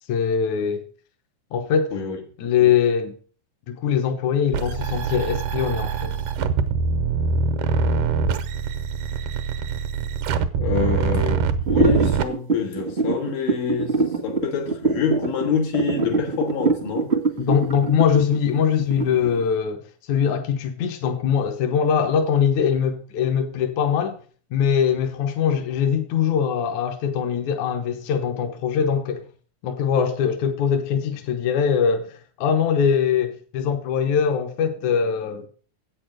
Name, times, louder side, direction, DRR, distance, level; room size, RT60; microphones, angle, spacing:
voice 1, 0.1-0.8 1.5-1.9 2.4-3.2 3.7-6.1 17.4-24.2 24.5-29.3 29.6-35.5, left 7 dB, 70° left, 2.2 m, -22 dB
sound 1, 4.5-12.2, right 5 dB, 80° right, 2.3 m, -24 dB
voice 2, 10.6-13.9 14.2-17.1, left 6 dB, 90° left, 3.4 m, -26 dB
sound 2, 11.6-19.4, right 3 dB, 45° right, 0.8 m, -23 dB
8.3 x 6.8 x 6.3 m
omnidirectional pair, 3.6 m